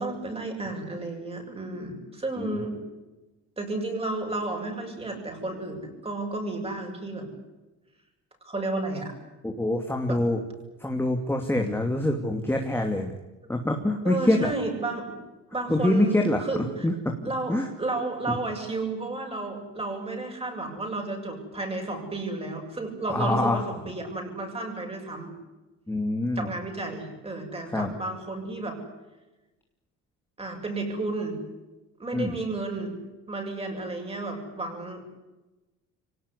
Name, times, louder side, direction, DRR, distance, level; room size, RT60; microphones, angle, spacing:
voice 1, 0.0-2.8 3.6-7.3 8.5-9.1 10.0-10.2 14.0-15.2 15.5-16.1 16.4-16.6 17.2-25.3 26.4-28.8 30.4-31.4 32.0-33.0 33.3-35.1, right 2 dB, 20° right, 2 dB, 7.5 m, -32 dB
voice 2, 9.4-10.4 10.8-13.1 13.5-14.5 15.7-16.4 16.8-17.7 18.3-18.4 23.1-23.6 25.9-26.5 27.7-28.0 32.1-32.4, left 1 dB, 5° left, 3 dB, 2.6 m, -25 dB
24.5 x 18.5 x 9.9 m, 1.1 s
cardioid pair, 115°, 30 cm